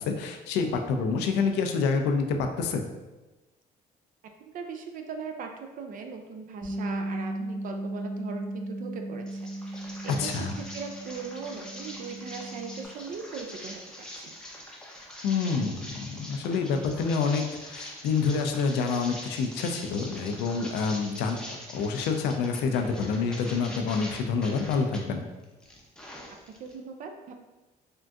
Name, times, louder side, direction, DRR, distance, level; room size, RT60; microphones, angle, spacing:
voice 1, 0.0-2.8 10.1-10.6 15.2-21.4 21.7-25.2, left 5 dB, 80° left, 5 dB, 0.4 m, -27 dB
voice 2, 4.4-13.8 14.1-14.4 26.6-27.3, right 5 dB, 55° right, 4 dB, 0.4 m, -39 dB
Bass guitar, 6.6-12.9, right 1 dB, 20° right, 1.0 m, -36 dB
sound 1, 9.3-25.0 25.4-26.7, left 1 dB, 5° left, 0.5 m, -43 dB
3.6 x 2.5 x 2.3 m, 1.1 s
cardioid pair, 110°, 17 cm